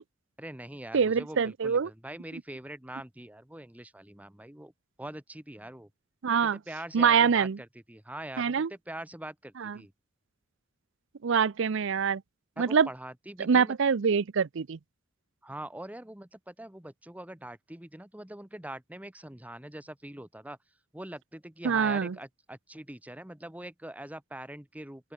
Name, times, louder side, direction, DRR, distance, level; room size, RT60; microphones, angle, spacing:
voice 1, 0.4-4.7 5.0-5.9 6.4-9.9 12.6-13.7 15.4-20.6 20.9-25.1, right 1 dB, 5° right, 1.1 m, -43 dB
voice 2, 0.9-1.9 6.2-6.6 6.9-7.6 8.4-8.7 9.6-9.8 11.2-12.2 12.6-12.9 13.4-14.8 21.6-22.2, right 6 dB, 65° right, 0.5 m, -25 dB
open air
head